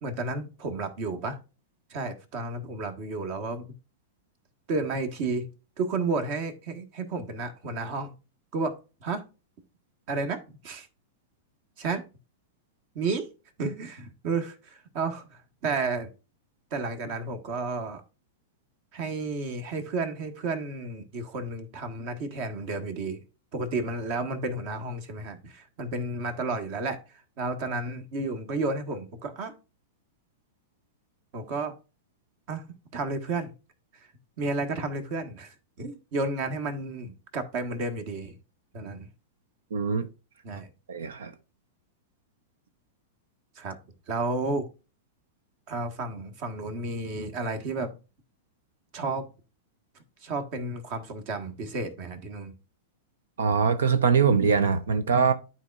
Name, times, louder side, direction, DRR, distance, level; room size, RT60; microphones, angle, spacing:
voice 1, 0.0-1.4 1.9-3.7 4.7-5.5 5.8-8.1 8.5-9.2 10.1-10.9 11.8-12.1 12.9-13.3 13.6-16.1 16.7-18.0 18.9-23.2 23.5-29.5 31.3-31.8 32.5-33.5 33.9-34.1 34.4-38.4 38.7-39.1 40.4-40.7 43.5-43.8 44.1-44.7 45.7-47.9 48.9-49.3 50.2-52.5, right 3 dB, 50° right, 1.5 m, -32 dB
voice 2, 39.7-40.1 40.9-41.3 53.4-55.3, right 5 dB, 75° right, 0.6 m, -23 dB
12.0 x 4.4 x 2.4 m
hypercardioid pair, 100°, 0 cm